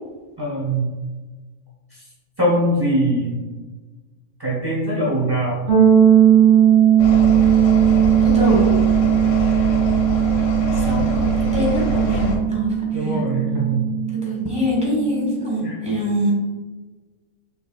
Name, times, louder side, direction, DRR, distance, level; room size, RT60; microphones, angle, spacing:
voice 1, 0.4-0.9 1.9-2.0 2.4-3.4 4.4-5.6 10.8-11.1 12.9-13.8 15.6-15.7, right 1 dB, 30° right, -6 dB, 0.4 m, -22 dB
sound 1, 5.7-15.4, right 9 dB, 50° right, 1.9 m, -17 dB
sound 2, 7.0-12.4, left 1 dB, 65° left, 1.0 m, -24 dB
voice 2, 8.2-8.8 10.7-13.2 14.1-16.3, left 1 dB, 5° right, -4 dB, 1.1 m, -24 dB
5.5 x 3.2 x 2.2 m, 1.3 s
omnidirectional pair, 1.5 m